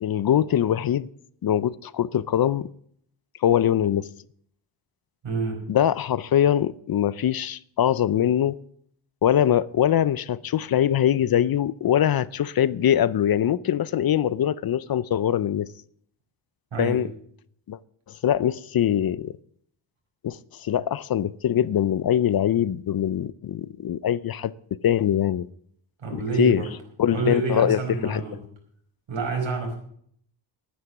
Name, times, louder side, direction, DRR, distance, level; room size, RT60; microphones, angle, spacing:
voice 1, 0.0-1.1 1.4-2.7 3.4-4.1 5.7-8.6 9.2-15.7 16.8-17.1 17.7-17.8 18.2-19.3 20.2-24.5 24.8-25.5 26.1-26.6 27.0-28.2, left 10 dB, 55° left, 0.5 m, -22 dB
voice 2, 5.2-5.6 16.7-17.0 26.0-26.7 27.1-28.4 29.1-29.8, right 4 dB, 80° right, 4.9 m, -28 dB
11.0 x 9.7 x 7.0 m
wide cardioid pair, 145°, 45 cm